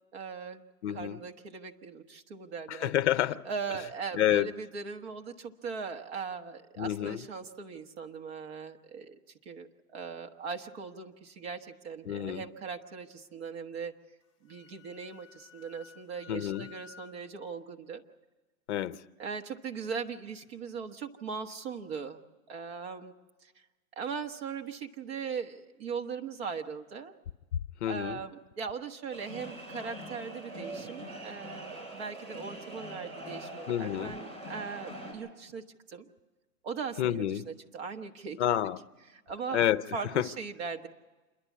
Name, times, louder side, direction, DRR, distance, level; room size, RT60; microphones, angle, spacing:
voice 1, 0.1-0.6 0.9-2.9 3.4-9.2 9.4-13.9 14.4-18.0 19.2-22.2 22.5-23.1 23.4-23.5 24.0-27.1 27.9-36.1 36.6-38.4 39.1-39.6 39.9-40.9, right 5 dB, 45° right, 1.4 m, -39 dB
voice 2, 0.8-1.2 2.7-3.4 4.1-4.5 6.8-7.2 12.1-12.4 16.3-16.6 18.7-19.0 27.8-28.2 33.7-34.1 37.0-37.4 38.4-38.8 39.5-39.8 40.2-40.3, left 12 dB, 50° left, 0.7 m, -28 dB
Wind instrument woodwind instrument, 14.2-17.2, left 7 dB, 15° left, 2.5 m, -54 dB
sound 1, 29.1-35.1, right 1 dB, 25° right, 7.9 m, -43 dB
27.5 x 11.5 x 8.4 m
hypercardioid pair, 165°, 44 cm